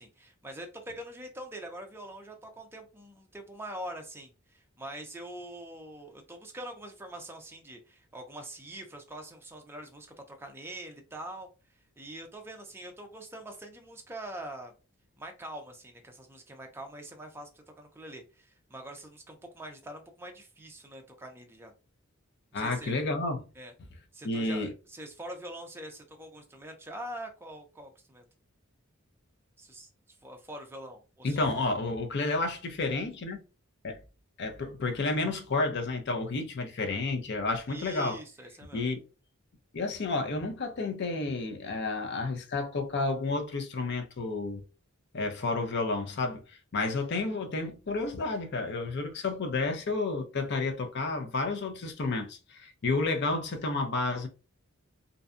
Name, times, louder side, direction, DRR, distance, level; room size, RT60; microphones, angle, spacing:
voice 1, 0.0-11.5 12.0-14.7 15.2-21.7 22.5-22.9 23.6-23.7 24.1-28.2 29.6-29.9 30.2-31.7 37.7-38.8, right 1 dB, 10° right, 0.5 m, -44 dB
voice 2, 22.5-23.4 24.2-24.7 31.2-33.4 33.8-34.0 34.4-38.2 38.7-39.0 39.7-44.6 45.1-54.3, left 3 dB, 50° left, 0.5 m, -31 dB
2.6 x 2.2 x 2.4 m
head